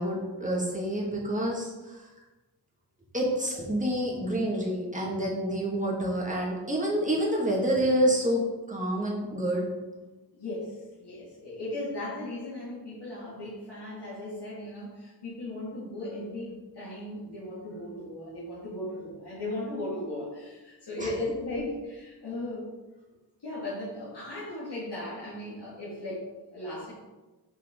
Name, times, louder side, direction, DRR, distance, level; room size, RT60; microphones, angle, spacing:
voice 1, 0.0-2.1 3.1-9.7 21.0-21.1, right 1 dB, 20° right, -3 dB, 1.8 m, -28 dB
voice 2, 10.3-22.7 23.4-26.9, left 1 dB, 65° left, -9 dB, 2.1 m, -37 dB
6.3 x 4.5 x 3.7 m, 1.2 s
wide cardioid pair, 65°, 42 cm